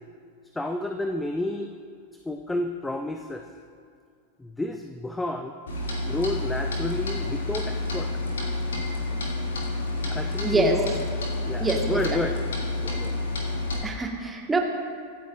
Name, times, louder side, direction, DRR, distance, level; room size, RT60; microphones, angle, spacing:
voice 1, 0.5-1.7 2.1-3.5 4.4-5.5 6.0-8.1 10.1-10.9 11.4-12.4 12.8-13.2, left 1 dB, 10° left, 5 dB, 0.6 m, -30 dB
Clock, 5.7-13.8, left 2 dB, 65° left, 2.4 m, -29 dB
voice 2, 10.4-10.7 11.6-11.8 13.8-14.6, right 3 dB, 10° right, 1 dB, 1.6 m, -24 dB
24.5 x 9.1 x 2.5 m, 2.3 s
figure-of-eight pair, 90°, 0 cm